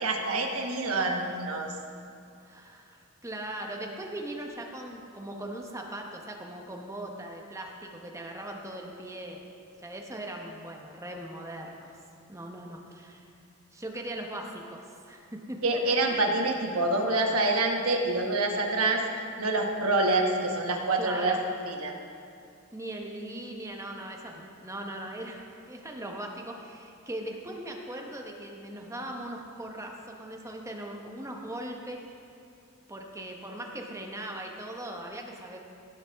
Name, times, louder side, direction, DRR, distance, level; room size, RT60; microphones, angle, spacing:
voice 1, 0.0-1.7 15.6-19.0 19.4-21.4 21.7-21.9, right 2 dB, 70° right, 2 dB, 1.2 m, -26 dB
voice 2, 2.4-9.4 9.8-12.0 12.3-13.3 13.7-15.7 16.1-16.3 21.0-21.4 22.7-32.0 32.9-35.6, right 1 dB, 15° right, 1 dB, 1.0 m, -39 dB
17.0 x 7.6 x 3.5 m, 2.5 s
head